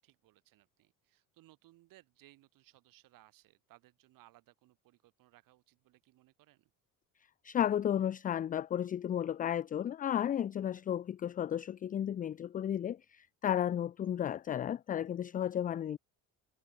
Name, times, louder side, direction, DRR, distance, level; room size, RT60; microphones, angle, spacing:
voice 1, 0.0-6.7, right 17 dB, 65° right, 7.3 m, -64 dB
voice 2, 7.4-16.0, left 10 dB, 25° left, 0.4 m, -33 dB
cardioid pair, 150°, 36 cm